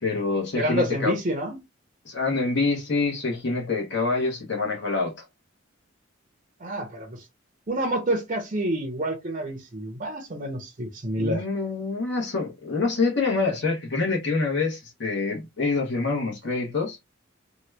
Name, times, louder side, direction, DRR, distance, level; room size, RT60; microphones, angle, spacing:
voice 1, 0.0-1.1 2.0-5.1 11.2-17.0, left 3 dB, 60° left, 1.0 m, -26 dB
voice 2, 0.6-1.6 6.6-7.3 7.7-11.4, right 1 dB, 40° right, 0.6 m, -28 dB
2.9 x 2.3 x 3.2 m
head